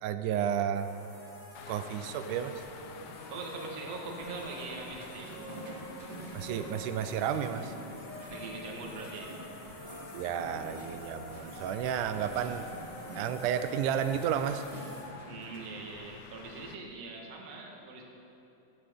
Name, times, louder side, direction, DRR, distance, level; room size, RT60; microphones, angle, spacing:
voice 1, 0.0-0.9 1.7-2.6 6.3-7.7 10.1-12.7 13.2-14.6, right 9 dB, 85° right, 10 dB, 2.1 m, -32 dB
sound 1, 0.7-15.0, equal, 35° left, 3.6 m, -47 dB
sound 2, 1.6-16.8, left 7 dB, 75° left, 1.9 m, -51 dB
voice 2, 3.3-5.3 8.3-9.3 15.2-18.0, right 3 dB, 60° right, 0 dB, 2.5 m, -42 dB
sound 3, 4.9-15.9, right 1 dB, 35° right, 2.5 m, -48 dB
17.0 x 12.5 x 3.6 m, 2.9 s
omnidirectional pair, 3.6 m